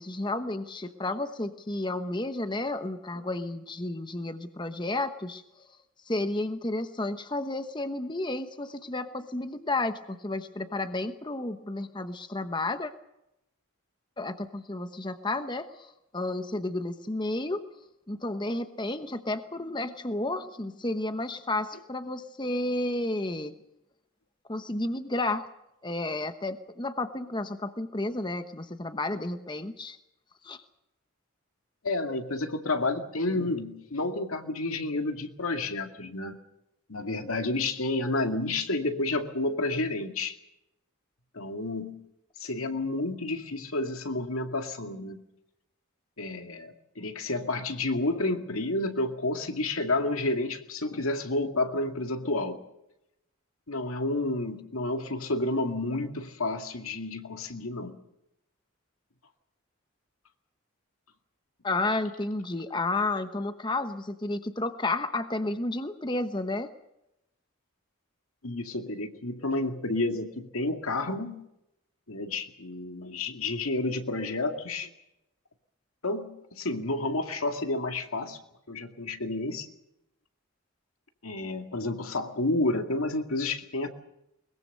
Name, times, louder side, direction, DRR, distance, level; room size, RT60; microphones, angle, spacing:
voice 1, 0.0-5.7 6.1-12.9 14.2-17.6 18.1-23.5 24.5-25.5 25.8-30.0 30.4-30.6 61.6-66.7, left 2 dB, 20° left, 9 dB, 1.0 m, -32 dB
voice 2, 31.8-36.4 36.9-40.4 41.3-42.1 42.4-45.2 46.2-52.6 53.7-58.0 68.4-71.5 72.1-74.9 76.0-78.4 78.7-79.7 81.2-83.9, left 2 dB, 85° left, 6 dB, 2.2 m, -30 dB
22.0 x 21.0 x 6.7 m, 0.86 s
head